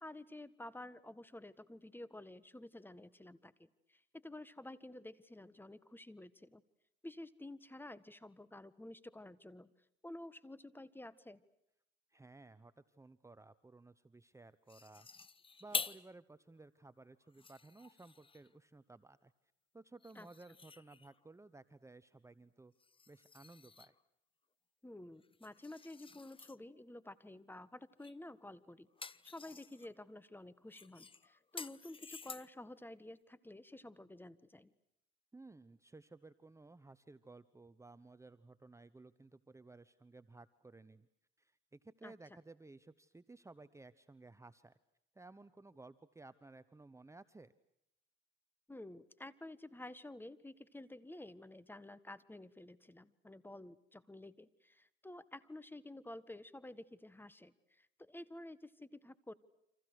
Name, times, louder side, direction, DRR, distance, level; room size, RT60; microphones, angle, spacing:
voice 1, 0.0-6.6 7.0-9.7 10.0-11.4 20.1-20.3 24.8-34.7 42.0-42.1 48.7-59.3, left 1 dB, 10° left, 16 dB, 1.6 m, -51 dB
voice 2, 12.1-15.1 15.6-19.3 19.7-22.7 23.1-23.9 35.3-41.1 41.4-44.8 45.1-47.5, right 3 dB, 15° right, 14 dB, 1.0 m, -57 dB
sound 1, 14.7-16.1 16.6-16.7 17.2-18.5 20.0-21.2 22.8-24.0 25.2-26.6 28.0-28.3 28.6-29.9 30.7-32.7, left 4 dB, 25° left, 1.0 m, -47 dB
29.5 x 26.5 x 6.5 m, 0.78 s
cardioid pair, 90°, 20 cm